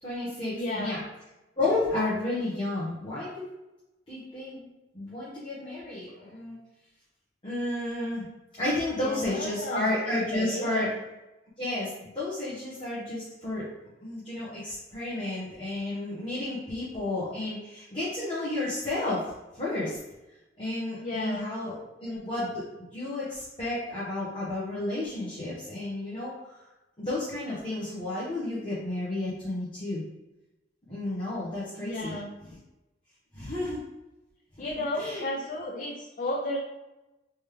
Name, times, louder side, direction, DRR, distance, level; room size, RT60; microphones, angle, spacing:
voice 1, 0.0-1.0 1.6-3.4 4.1-4.7 4.9-6.6 7.4-8.2 8.6-10.9 11.6-13.7 14.0-19.2 19.5-20.0 20.6-21.7 22.0-22.6 22.9-26.6 27.0-30.0 30.9-32.2 32.5-32.6 33.3-33.8 34.9-35.3, left 2 dB, 30° left, -10 dB, 1.0 m, -32 dB
voice 2, 0.5-1.0 8.9-9.9 10.2-10.9 21.0-21.5 31.8-32.3 34.6-36.6, left 1 dB, 45° left, 0 dB, 0.4 m, -33 dB
3.4 x 3.1 x 3.3 m, 1.0 s
head